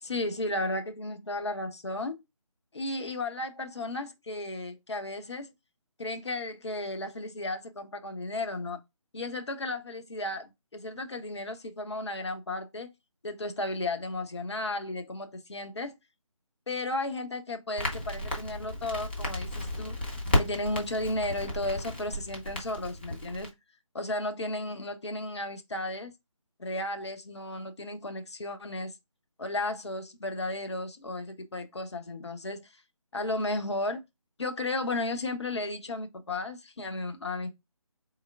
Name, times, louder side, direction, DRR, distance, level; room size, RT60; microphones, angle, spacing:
voice 1, 0.0-2.2 2.7-5.5 6.0-8.8 9.1-12.9 13.2-16.0 16.7-23.5 23.9-26.1 26.6-28.9 29.4-32.7 33.1-34.0 34.4-37.5, left 2 dB, 50° left, 0.8 m, -34 dB
Crackle, 17.8-23.5, left 1 dB, 20° left, 0.7 m, -33 dB
4.3 x 3.5 x 2.3 m
figure-of-eight pair, 155°, 18 cm